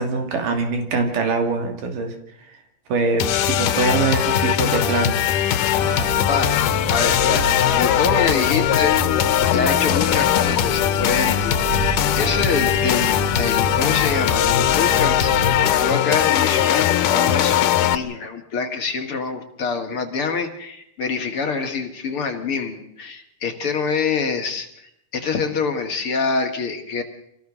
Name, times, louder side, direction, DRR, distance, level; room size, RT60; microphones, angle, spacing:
voice 1, 0.0-2.1 2.9-5.2, right 4 dB, 85° right, 4 dB, 4.3 m, -23 dB
sound 1, 3.2-18.0, left 11 dB, 85° left, 2.6 m, -20 dB
sound 2, 5.7-15.7, right 2 dB, 50° right, 6.5 m, -29 dB
voice 2, 6.9-9.0 9.5-27.0, left 5 dB, 45° left, 4 dB, 2.4 m, -26 dB
26.5 x 18.5 x 6.2 m, 0.79 s
omnidirectional pair, 3.7 m